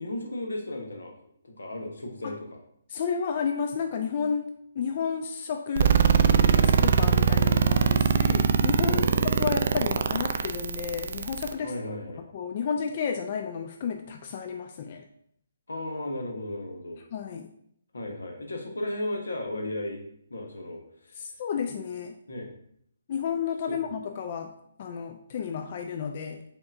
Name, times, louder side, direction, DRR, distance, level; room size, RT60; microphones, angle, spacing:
voice 1, 0.0-2.6 6.5-6.7 8.8-9.2 11.6-12.3 15.7-17.0 17.9-20.0 20.3-21.2 22.3-22.5 23.7-23.8, left 1 dB, 90° left, 2 dB, 1.0 m, -35 dB
voice 2, 2.9-4.5 4.8-6.0 6.5-9.1 9.4-11.7 12.3-15.0 17.1-17.5 21.1-22.2 23.1-24.5 24.8-26.4, left 6 dB, 40° left, 5 dB, 0.3 m, -32 dB
sound 1, 5.8-11.5, right 7 dB, 55° right, 0.3 m, -22 dB
5.1 x 3.7 x 2.4 m, 0.68 s
hypercardioid pair, 150°, 0 cm